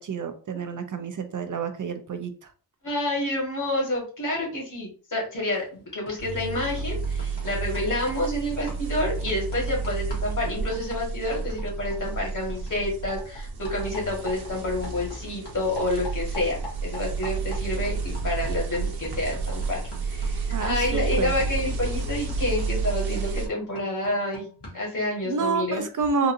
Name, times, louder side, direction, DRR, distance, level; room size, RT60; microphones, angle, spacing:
voice 1, 0.0-2.5 20.5-21.3 25.2-26.3, right 5 dB, 50° right, 0.5 m, -29 dB
voice 2, 2.8-24.5 24.7-25.8, left 1 dB, 50° left, 1.7 m, -29 dB
sound 1, 5.5-5.8 6.1-15.2 15.5-24.9, left 1 dB, 90° left, 1.7 m, -45 dB
sound 2, 6.2-23.5, right 4 dB, 70° right, 0.9 m, -31 dB
3.7 x 2.6 x 2.6 m
wide cardioid pair, 100°, 39 cm